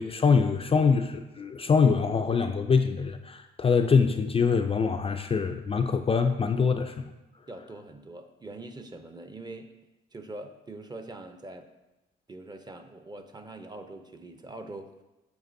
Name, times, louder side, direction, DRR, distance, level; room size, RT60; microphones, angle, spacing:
voice 1, 0.0-6.9, left 5 dB, 30° left, 6 dB, 0.4 m, -24 dB
voice 2, 7.5-9.7 10.1-11.7 12.3-15.0, right 2 dB, 20° right, 7 dB, 0.6 m, -43 dB
7.9 x 5.1 x 2.6 m, 1.0 s
cardioid pair, 90°, 20 cm